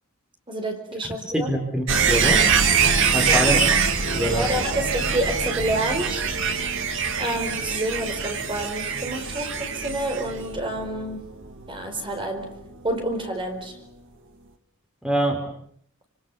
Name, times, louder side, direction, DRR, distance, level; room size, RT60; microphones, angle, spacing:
voice 1, 0.5-1.5 3.2-3.6 4.3-6.2 7.2-11.3 11.7-12.6 12.8-13.8, right 1 dB, 25° right, 5 dB, 4.7 m, -28 dB
voice 2, 1.3-2.4 3.1-3.8 4.1-4.5 15.0-15.5, right 1 dB, 5° right, 4 dB, 4.2 m, -25 dB
sound 1, 1.9-12.7 13.0-13.1, right 6 dB, 65° right, 2.6 m, -24 dB
29.5 x 27.0 x 7.1 m, 0.66 s
head